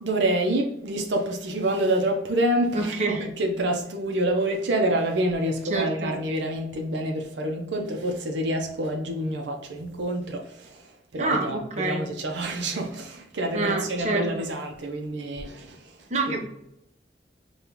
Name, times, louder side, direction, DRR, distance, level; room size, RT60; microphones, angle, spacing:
voice 1, 0.0-16.4, right 1 dB, 75° right, 0.6 m, -27 dB
voice 2, 2.7-3.2 5.7-6.1 11.2-12.0 13.5-14.3 16.1-16.4, right 3 dB, 40° right, 0.7 m, -27 dB
5.3 x 2.3 x 2.9 m
head